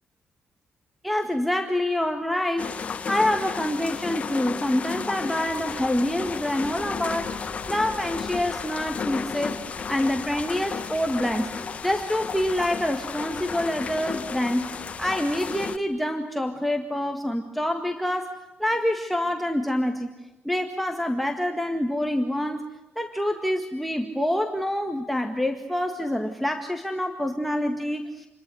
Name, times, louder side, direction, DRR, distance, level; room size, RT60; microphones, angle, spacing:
voice 1, 1.0-9.6 9.9-11.5 11.8-20.1 20.4-22.7 23.0-28.3, left 1 dB, ahead, 3 dB, 1.9 m, -26 dB
sound 1, 2.6-15.8, left 6 dB, 35° left, 1.5 m, -33 dB
sound 2, 5.4-15.7, right 1 dB, 35° right, 8.0 m, -48 dB
28.5 x 23.0 x 8.0 m, 0.93 s
cardioid pair, 140°, 4 cm